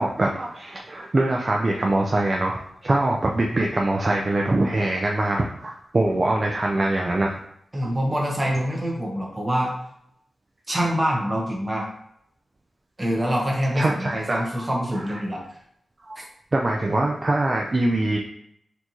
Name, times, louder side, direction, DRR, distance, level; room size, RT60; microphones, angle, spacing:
voice 1, 0.0-7.4 7.8-7.9 13.8-14.7 15.0-15.2 16.0-16.2 16.5-18.2, right 2 dB, 35° right, 0 dB, 0.4 m, -23 dB
voice 2, 7.7-9.7 10.7-11.9 13.0-15.4 16.2-16.3, equal, 20° right, -2 dB, 1.1 m, -25 dB
4.3 x 2.7 x 3.0 m, 0.73 s
wide cardioid pair, 90°, 0 cm